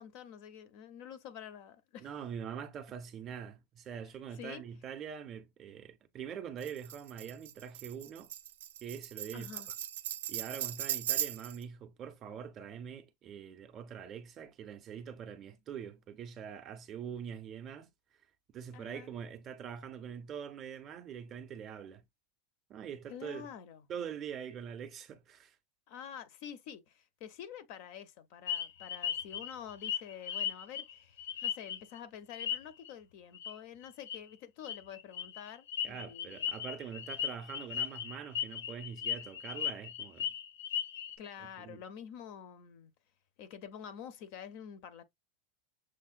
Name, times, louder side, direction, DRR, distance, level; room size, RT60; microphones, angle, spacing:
voice 1, 0.0-2.1 4.3-4.6 9.3-9.7 18.7-19.1 23.1-23.9 25.9-36.5 41.2-42.9 43.4-45.0, left 8 dB, 40° left, 0.5 m, -48 dB
voice 2, 2.0-8.3 8.8-9.6 10.3-17.9 18.5-22.0 22.7-23.5 23.9-25.6 35.8-40.3 41.6-41.8, right 8 dB, 20° right, 0.5 m, -44 dB
Tambourine, 6.6-11.6, right 11 dB, 80° right, 0.5 m, -38 dB
sound 1, 28.5-32.0 32.3-32.9 33.3-33.6 33.8-34.2 34.6-41.2, left 9 dB, 85° left, 1.0 m, -37 dB
6.3 x 2.1 x 2.4 m
supercardioid pair, 175°, 0 cm